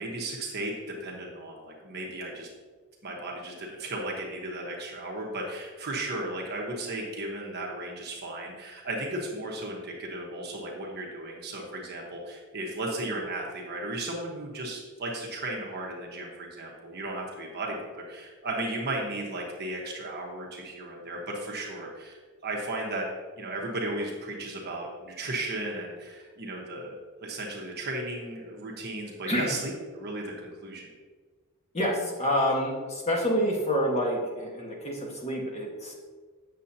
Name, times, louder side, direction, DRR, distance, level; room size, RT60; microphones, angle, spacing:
voice 1, 0.0-2.5 3.0-23.1 23.4-30.9, right 2 dB, 50° right, -1 dB, 1.2 m, -35 dB
voice 2, 29.3-29.6 31.7-35.9, equal, 30° left, -1 dB, 1.4 m, -28 dB
8.1 x 6.9 x 2.8 m, 1.4 s
head